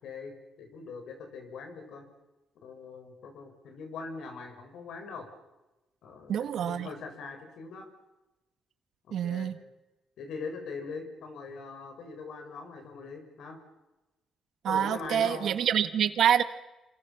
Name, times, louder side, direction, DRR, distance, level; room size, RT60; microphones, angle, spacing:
voice 1, 0.0-2.0 2.6-5.3 6.0-7.9 9.1-9.5 10.2-13.6 14.7-15.5, left 4 dB, 75° left, 5 dB, 6.8 m, -42 dB
voice 2, 6.3-6.9 9.1-9.6 14.6-16.4, right 9 dB, 70° right, 10 dB, 1.7 m, -26 dB
27.5 x 25.0 x 7.2 m, 1.0 s
cardioid pair, 90°, 0 cm